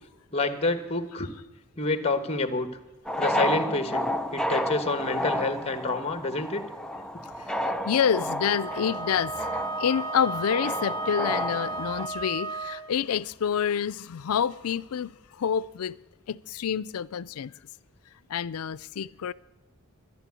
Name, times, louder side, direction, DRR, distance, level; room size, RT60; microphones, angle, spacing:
voice 1, 0.3-1.3 1.8-2.7 3.2-6.6, left 3 dB, 30° left, 1.2 m, -28 dB
sound 1, 3.1-12.1, equal, 5° left, 0.5 m, -31 dB
voice 2, 7.8-9.3 9.8-16.0 16.3-17.5 18.3-19.3, left 8 dB, 85° left, 0.4 m, -28 dB
Wind instrument woodwind instrument, 8.4-12.9, right 3 dB, 70° right, 1.6 m, -34 dB
12.0 x 11.5 x 8.3 m
head